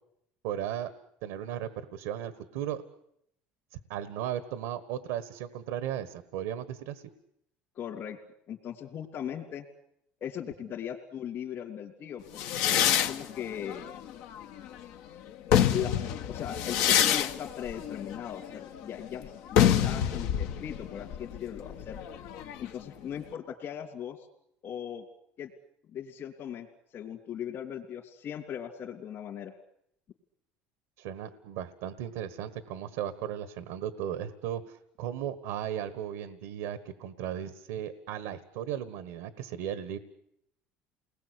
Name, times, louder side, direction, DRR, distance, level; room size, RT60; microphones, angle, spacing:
voice 1, 0.4-0.9 1.2-2.8 3.9-7.0 31.0-40.0, right 10 dB, 90° right, 12 dB, 1.5 m, -36 dB
voice 2, 7.7-8.2 8.5-9.7 10.2-13.9 15.7-22.0 22.6-24.3 24.6-25.0 25.4-25.5 25.9-26.7 26.9-29.5, left 9 dB, 55° left, -2 dB, 3.1 m, -39 dB
sound 1, 12.4-14.8 15.3-22.8, left 10 dB, 80° left, 1.5 m, -27 dB
29.0 x 20.5 x 8.4 m, 0.76 s
supercardioid pair, 95°, 5 cm